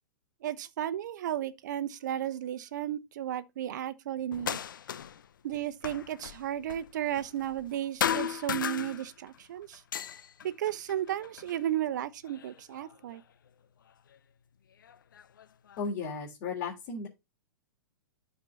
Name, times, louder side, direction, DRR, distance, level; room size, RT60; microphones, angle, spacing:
voice 1, 0.4-4.6 5.4-9.8 10.4-13.2, right 11 dB, 60° right, 0.9 m, -34 dB
sound 1, 4.3-5.3 5.5-7.7 8.0-9.4 9.7-11.6 12.3-13.2 14.1-14.2 14.8-15.9, left 9 dB, 70° left, 0.7 m, -36 dB
voice 2, 15.8-17.1, left 4 dB, 40° left, 3.3 m, -35 dB
12.0 x 4.7 x 3.8 m
figure-of-eight pair, 110°, 11 cm